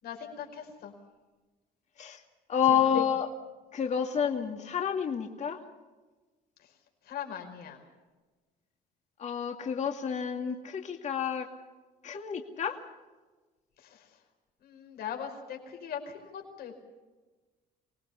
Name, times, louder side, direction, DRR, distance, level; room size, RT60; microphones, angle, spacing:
voice 1, 0.0-0.9 2.7-3.1 6.6-6.7 7.0-7.8 13.8-14.2 14.6-16.8, left 8 dB, 65° left, 3 dB, 5.0 m, -41 dB
voice 2, 2.5-3.3 3.7-5.6 9.2-11.5 12.0-12.8, left 8 dB, 45° left, 3 dB, 2.3 m, -29 dB
25.5 x 19.0 x 7.1 m, 1.3 s
cardioid pair, 110°, 17 cm